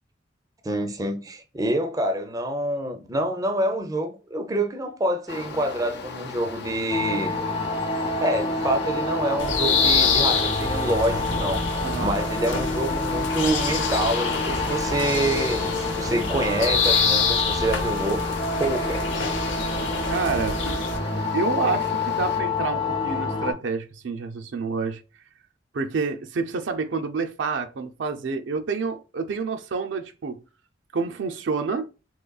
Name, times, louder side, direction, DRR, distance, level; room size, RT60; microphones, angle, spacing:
voice 1, 0.6-7.4 8.2-18.2 18.6-19.1, right 1 dB, 20° right, 0.5 m, -27 dB
sound 1, 5.3-22.4, left 4 dB, 60° left, 0.6 m, -36 dB
sound 2, 6.9-23.5, left 2 dB, 30° left, 0.8 m, -28 dB
sound 3, 9.4-21.0, left 5 dB, 90° left, 0.8 m, -26 dB
voice 2, 11.8-12.1 20.0-20.6 21.3-25.0 25.7-30.4 30.9-31.9, right 4 dB, 75° right, 0.5 m, -28 dB
3.8 x 3.0 x 2.3 m
head